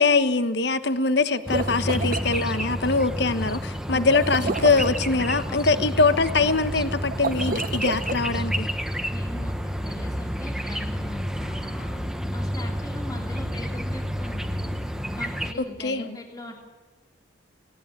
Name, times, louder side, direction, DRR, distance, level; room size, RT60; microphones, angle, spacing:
voice 1, 0.0-8.7 15.8-16.2, left 3 dB, 55° left, 12 dB, 1.2 m, -23 dB
sound 1, 1.3-2.3 4.1-5.0 7.1-8.2, right 3 dB, 45° right, 0.7 m, -30 dB
sound 2, 1.5-15.5, equal, 5° right, 1.0 m, -30 dB
voice 2, 5.5-5.9 9.1-12.0 12.3-14.7 15.1-16.6, left 1 dB, 20° left, 1 dB, 2.9 m, -40 dB
19.0 x 18.5 x 9.9 m, 1.2 s
head